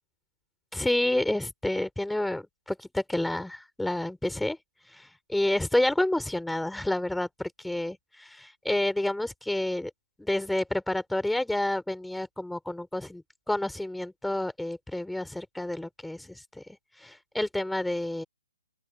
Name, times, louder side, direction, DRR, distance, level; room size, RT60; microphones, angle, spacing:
voice 1, 0.7-4.6 4.9-9.9 10.2-16.6 17.0-18.2, left 1 dB, ahead, 3.6 m, -29 dB
open air
figure-of-eight pair, 140°, 0 cm